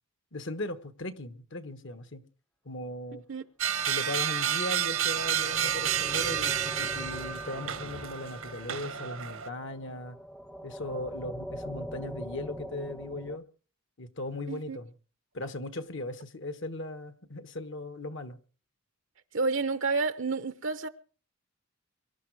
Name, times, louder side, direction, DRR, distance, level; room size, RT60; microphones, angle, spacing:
voice 1, 0.3-2.2 2.6-3.2 3.9-10.2 10.6-13.4 14.0-14.9 15.3-18.4, left 1 dB, 60° left, 1.4 m, -38 dB
sound 1, 3.6-9.5, right 9 dB, 90° right, 1.6 m, -30 dB
sound 2, 4.8-13.4, equal, 5° left, 0.7 m, -43 dB
voice 2, 19.3-20.9, right 4 dB, 60° right, 0.8 m, -29 dB
24.0 x 12.0 x 4.8 m
head